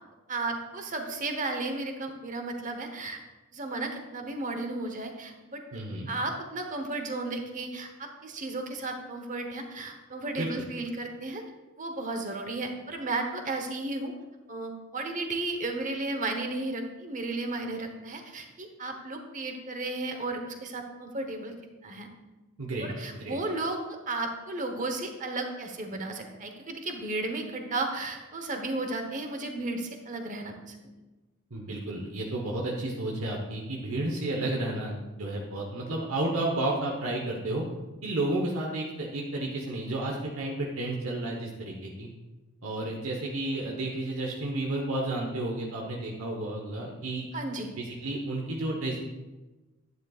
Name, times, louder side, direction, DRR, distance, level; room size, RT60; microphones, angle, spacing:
voice 1, 0.3-3.2 3.5-5.6 6.1-11.4 11.8-14.1 14.5-21.5 21.8-22.1 22.8-30.9 47.3-47.7, right 2 dB, 35° right, 5 dB, 1.0 m, -34 dB
voice 2, 5.7-6.1 10.4-10.7 22.6-22.9 23.1-23.4 31.5-37.6 38.0-42.1 42.6-47.3 47.8-49.0, right 2 dB, 70° right, -1 dB, 1.0 m, -32 dB
10.5 x 9.4 x 2.4 m, 1.1 s
head